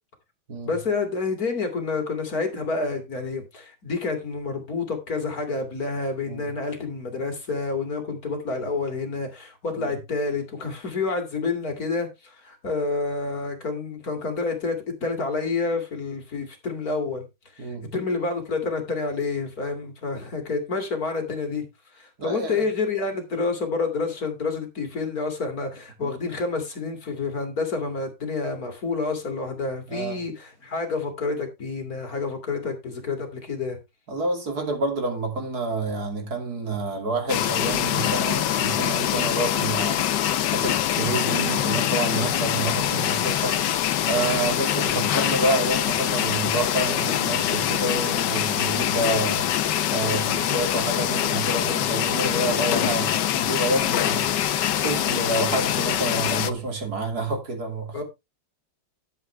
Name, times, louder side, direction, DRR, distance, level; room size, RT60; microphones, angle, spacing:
voice 1, 0.6-17.2 17.5-21.6 21.9-33.8 57.9-58.0, left 4 dB, 50° left, 2.9 m, -28 dB
voice 2, 17.6-17.9 22.2-22.7 26.0-26.1 29.9-30.2 34.1-43.8 44.0-49.5 49.9-54.5 54.8-58.0, right 2 dB, 50° right, 3.0 m, -28 dB
sound 1, 37.3-56.5, left 11 dB, 70° left, 1.4 m, -24 dB
12.5 x 7.6 x 3.3 m
omnidirectional pair, 2.1 m